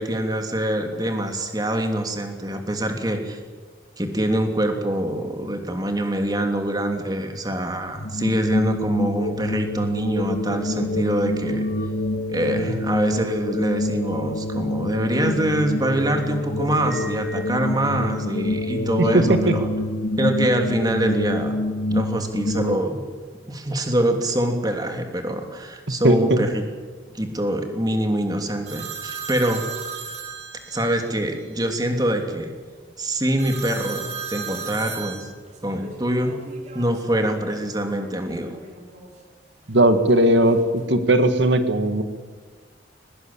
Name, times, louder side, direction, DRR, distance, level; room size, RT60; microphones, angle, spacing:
voice 1, 0.0-3.4 4.0-11.6 12.3-19.7 20.2-21.6 21.9-23.0 23.5-26.6 27.1-29.7 30.7-32.5 33.0-35.3 35.6-36.3 36.7-38.6, right 1 dB, 20° right, 4 dB, 3.0 m, -24 dB
sound 1, 7.9-22.8, left 1 dB, 65° left, 2.5 m, -26 dB
voice 2, 19.0-19.5 26.0-26.4 39.7-42.0, right 1 dB, 80° right, 8 dB, 1.9 m, -18 dB
sound 2, 28.7-31.1 33.4-37.6 38.0-39.1 40.0-40.9, right 6 dB, 40° right, 4.1 m, -36 dB
22.5 x 20.5 x 8.8 m, 1.5 s
head